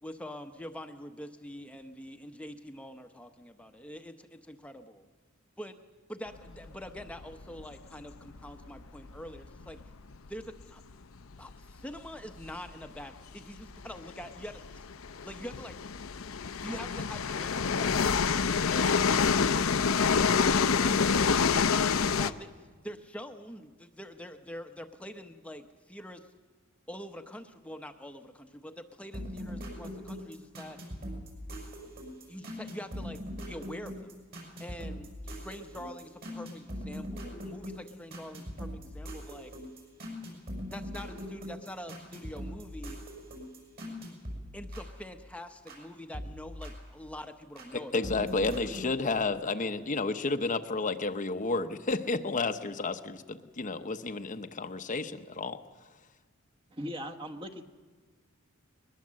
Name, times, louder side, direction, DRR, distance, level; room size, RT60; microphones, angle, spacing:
voice 1, 0.0-5.1 5.6-5.8 6.1-9.8 10.3-10.8 11.4-14.8 15.2-15.8 16.6-18.3 18.7-19.3 20.7-22.5 22.8-26.3 26.9-30.8 32.3-34.2 34.6-39.5 40.7-43.0 44.5-48.1, equal, 5° left, 6 dB, 0.9 m, -45 dB
sound 1, 6.7-10.6 10.9-11.0 11.3-11.5 12.4-12.6 12.8-12.9 13.6-22.3, left 5 dB, 75° left, 0.7 m, -27 dB
sound 2, 29.1-45.8 46.1-47.7 48.0-48.9, equal, 50° right, 6.6 m, -42 dB
voice 2, 47.7-55.6, left 3 dB, 40° left, 8 dB, 0.8 m, -31 dB
voice 3, 56.7-57.6, equal, 25° right, 3 dB, 1.3 m, -39 dB
21.5 x 21.0 x 7.5 m, 1.4 s
head